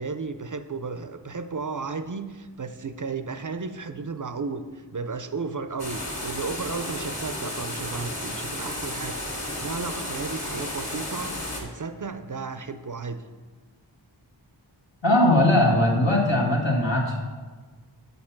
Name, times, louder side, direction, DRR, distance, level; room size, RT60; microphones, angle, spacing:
voice 1, 0.0-11.3 11.6-13.2, right 4 dB, 45° right, 9 dB, 0.5 m, -34 dB
sound 1, 5.8-11.6, left 1 dB, 35° left, 1.7 m, -33 dB
voice 2, 15.0-17.2, left 1 dB, 75° left, -1 dB, 1.5 m, -20 dB
6.5 x 5.5 x 5.8 m, 1.4 s
wide cardioid pair, 45°, 45 cm